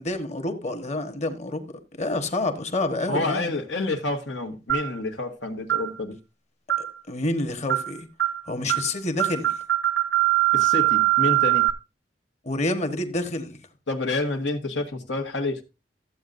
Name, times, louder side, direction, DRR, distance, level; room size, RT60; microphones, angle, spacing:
voice 1, 0.0-3.5 6.8-8.1 8.5-9.6 12.4-13.6, left 2 dB, 40° left, 1.3 m, -28 dB
voice 2, 3.1-6.1 10.5-11.6 13.9-15.6, left 2 dB, 90° left, 1.6 m, -28 dB
sound 1, 4.7-5.0 5.7-5.9 6.7-7.0 7.7-7.9 8.2-8.4 8.7-8.9 9.2-11.7, right 16 dB, 80° right, 0.9 m, -22 dB
14.0 x 8.1 x 2.6 m
head